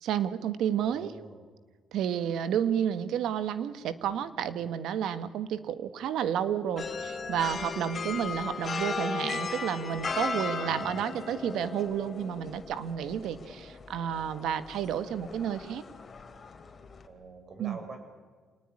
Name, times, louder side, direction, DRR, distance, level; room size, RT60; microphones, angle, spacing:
voice 1, 0.0-1.1 1.9-15.8 17.6-17.8, right 9 dB, 80° right, 11 dB, 1.6 m, -31 dB
voice 2, 0.8-1.5 10.4-11.2 17.0-18.0, right 3 dB, 45° right, 6 dB, 7.4 m, -46 dB
sound 1, 6.8-17.1, left 4 dB, 40° left, 3.5 m, -37 dB
27.5 x 19.5 x 9.9 m, 1.5 s
cardioid pair, 90°, 0 cm